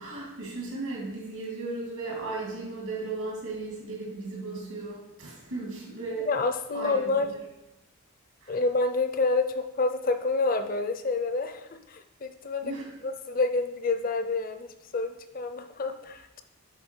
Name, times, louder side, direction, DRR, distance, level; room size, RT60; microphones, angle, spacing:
voice 1, 0.0-6.3 6.7-7.4 8.4-8.6 12.6-12.9, right 3 dB, 75° right, -3 dB, 2.3 m, -36 dB
voice 2, 6.3-7.3 8.5-12.7 13.0-16.4, left 3 dB, 40° left, 8 dB, 0.5 m, -28 dB
7.7 x 4.0 x 4.5 m, 0.95 s
head